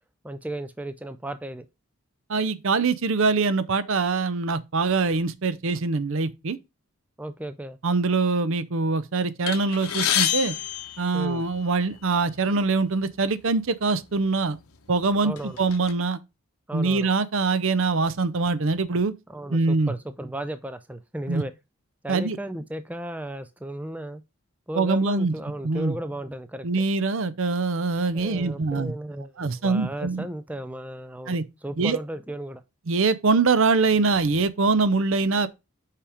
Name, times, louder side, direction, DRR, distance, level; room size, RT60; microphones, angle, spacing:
voice 1, 0.2-1.6 7.2-7.8 11.1-11.4 15.2-15.6 16.7-17.1 19.3-21.5 22.0-24.2 24.7-26.7 28.1-32.6, right 1 dB, 5° right, 0.3 m, -35 dB
voice 2, 2.3-6.6 7.8-10.5 11.0-14.6 14.9-16.2 16.7-19.1 19.5-19.9 21.3-21.4 22.1-22.4 24.8-25.3 25.6-25.9 26.6-28.9 29.4-30.3 31.3-31.4 31.8-32.0 32.9-35.5, right 3 dB, 60° right, 0.6 m, -23 dB
sound 1, 9.5-11.8 12.6-12.8 13.1-13.3 14.1-14.3 14.8-15.9, left 10 dB, 75° left, 0.9 m, -28 dB
5.7 x 5.0 x 4.9 m
head